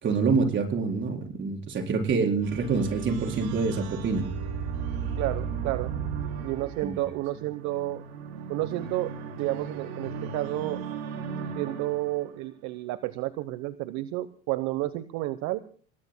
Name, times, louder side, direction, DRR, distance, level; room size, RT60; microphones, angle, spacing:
voice 1, 0.0-4.3 6.8-7.0, right 4 dB, 35° right, 2 dB, 4.5 m, -26 dB
sound 1, 2.4-12.5, right 6 dB, 80° right, 3.8 m, -35 dB
voice 2, 5.2-5.9 6.4-8.0 8.5-10.8 11.6-15.6, right 16 dB, 60° right, 13 dB, 1.0 m, -31 dB
29.5 x 19.5 x 2.2 m, 0.41 s
supercardioid pair, 105°, 32 cm